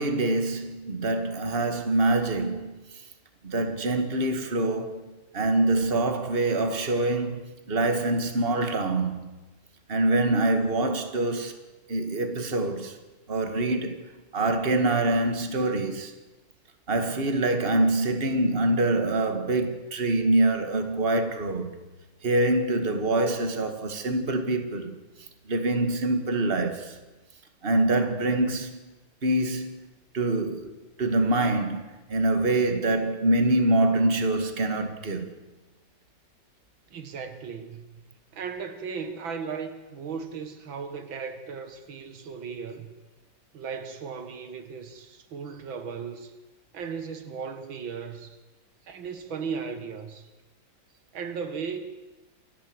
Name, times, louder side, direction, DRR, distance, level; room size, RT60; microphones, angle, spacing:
voice 1, 0.0-2.7 3.4-9.3 9.9-11.6 11.9-12.9 13.3-16.1 16.9-21.7 22.2-25.0 25.5-26.9 27.6-28.8 29.2-29.9 30.1-30.7 31.0-35.3, right 2 dB, 30° right, 2.1 m, -25 dB
voice 2, 36.9-37.9 38.3-42.9 43.5-46.3 46.7-48.4 48.9-50.3 51.1-51.8, right 6 dB, 90° right, 2.5 m, -36 dB
28.5 x 13.5 x 8.0 m
omnidirectional pair, 2.1 m